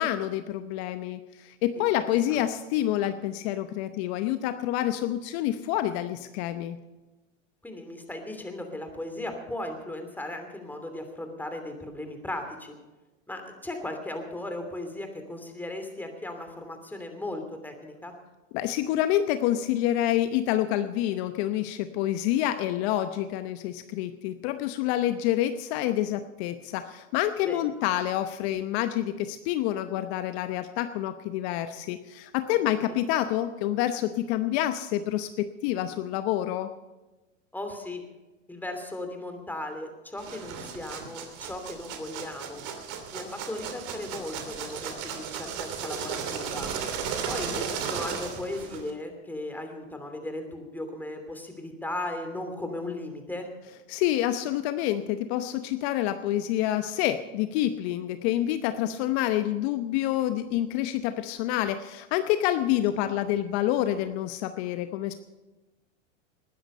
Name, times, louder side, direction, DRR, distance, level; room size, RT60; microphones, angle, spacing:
voice 1, 0.0-6.8 18.5-36.7 53.9-65.2, left 12 dB, 55° left, 10 dB, 0.9 m, -27 dB
voice 2, 7.6-12.7 13.3-18.1 27.4-27.6 32.7-33.0 37.5-38.0 38.5-42.6 43.1-46.7 47.3-53.5, left 1 dB, 5° left, 5 dB, 2.8 m, -37 dB
sound 1, 40.2-48.9, right 7 dB, 50° right, 2.9 m, -35 dB
20.0 x 10.0 x 5.5 m, 1.1 s
hypercardioid pair, 100°, 38 cm